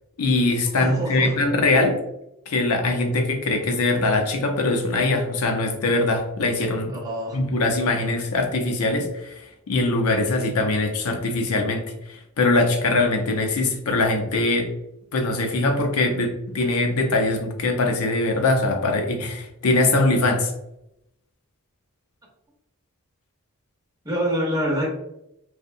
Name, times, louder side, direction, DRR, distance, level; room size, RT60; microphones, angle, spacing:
voice 1, 0.2-2.0 2.5-7.0 7.3-9.3 9.7-11.8 12.1-14.7 15.1-20.5, left 2 dB, 85° left, 4 dB, 0.5 m, -22 dB
voice 2, 0.8-1.4 6.9-7.4 7.9-8.0 24.0-24.9, equal, 15° right, -4 dB, 0.6 m, -26 dB
2.6 x 2.1 x 2.5 m, 0.83 s
head